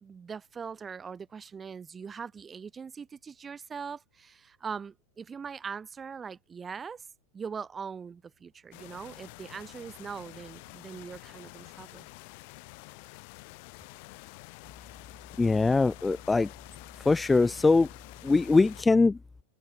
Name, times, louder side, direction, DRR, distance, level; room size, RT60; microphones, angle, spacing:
voice 1, 0.0-7.0 7.3-12.1, right 6 dB, 20° right, 1.2 m, -41 dB
sound 1, 8.7-18.8, left 31 dB, 45° left, 2.4 m, -48 dB
voice 2, 15.4-16.5 17.1-17.9 18.2-19.2, left 3 dB, 10° left, 0.3 m, -22 dB
open air
figure-of-eight pair, 90°, 0 cm